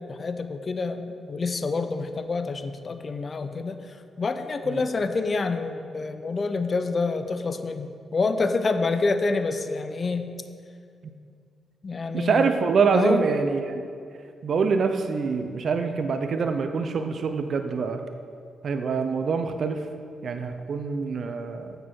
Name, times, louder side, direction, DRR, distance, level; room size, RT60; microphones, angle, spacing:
voice 1, 0.1-3.8 4.2-10.3 11.8-12.5 12.9-13.2, left 3 dB, 45° left, 9 dB, 0.6 m, -27 dB
voice 2, 12.1-13.8 14.4-18.0 18.6-19.9 20.2-21.8, right 5 dB, 60° right, 7 dB, 0.6 m, -25 dB
8.2 x 6.7 x 4.5 m, 2.3 s
hypercardioid pair, 45°, 0 cm